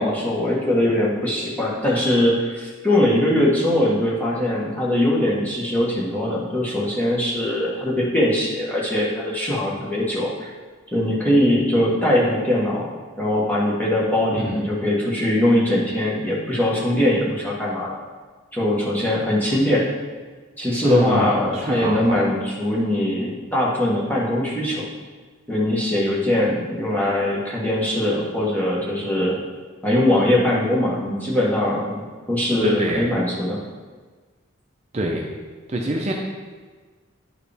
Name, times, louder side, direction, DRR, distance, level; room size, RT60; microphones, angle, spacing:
voice 1, 0.0-10.5 10.9-12.9 13.2-17.9 18.5-19.9 20.6-24.9 25.5-29.4 29.8-33.6, left 1 dB, 10° left, -6 dB, 1.2 m, -21 dB
voice 2, 20.8-22.2 32.6-33.0 34.9-35.2 35.7-36.1, right 1 dB, 30° right, 0 dB, 0.5 m, -25 dB
9.7 x 4.7 x 3.4 m, 1.4 s
head